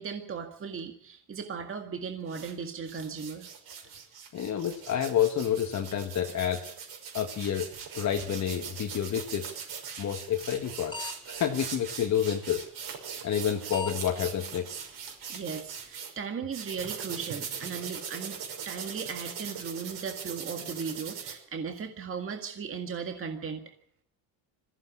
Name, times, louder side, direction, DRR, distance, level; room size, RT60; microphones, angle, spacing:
voice 1, 0.0-3.5 15.3-23.6, right 6 dB, 30° right, 4 dB, 2.0 m, -37 dB
sound 1, 2.2-2.5 2.9-16.1 16.5-21.3, right 7 dB, 60° right, 6.1 m, -40 dB
voice 2, 4.3-6.7 7.1-9.5 10.0-11.0 11.3-12.6 13.2-14.7, left 9 dB, 40° left, 4 dB, 1.6 m, -29 dB
sound 2, 10.4-10.6 10.9-11.1 11.4-11.5 12.4-12.6 13.4-13.5 13.7-14.0 14.5-14.6 15.0-15.1 15.5-15.6, left 3 dB, 10° left, 2.4 m, -36 dB
21.0 x 15.0 x 8.5 m, 0.70 s
cardioid pair, 125°, 43 cm